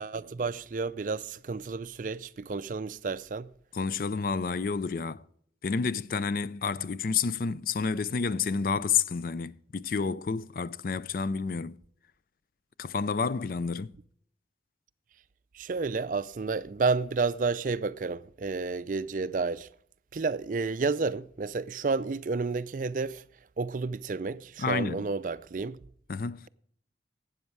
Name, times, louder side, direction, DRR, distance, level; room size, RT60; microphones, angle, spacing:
voice 1, 0.0-3.5 15.5-19.7 20.1-23.2 23.6-25.8, right 4 dB, 45° right, 0.4 m, -31 dB
voice 2, 3.7-5.2 5.6-11.8 12.8-13.9 24.6-25.0 26.1-26.4, left 5 dB, 50° left, 0.4 m, -30 dB
12.5 x 8.7 x 4.7 m
head